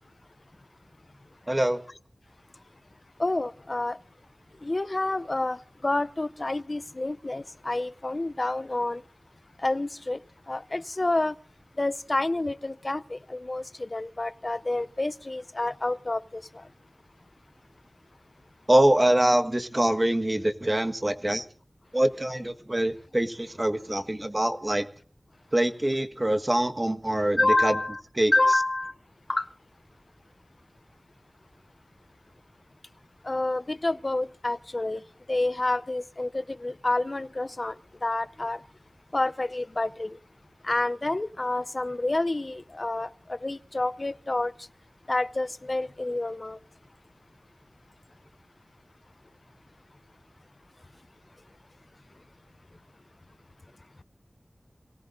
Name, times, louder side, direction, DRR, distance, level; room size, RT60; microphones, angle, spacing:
voice 1, 1.5-1.8 18.7-21.4 21.9-24.9 25.5-27.7 28.2-28.3, right 1 dB, 25° right, 1.5 m, -24 dB
voice 2, 3.2-4.0 4.6-9.0 9.6-10.2 10.5-11.3 11.8-16.4 27.4-28.0 28.3-28.9 29.3-29.5 33.2-35.0 35.3-37.7 38.0-38.6 39.1-40.2 40.6-44.5 45.1-46.6, left 2 dB, 45° left, 0.6 m, -28 dB
27.5 x 18.0 x 2.6 m
wide cardioid pair, 60°, 0 cm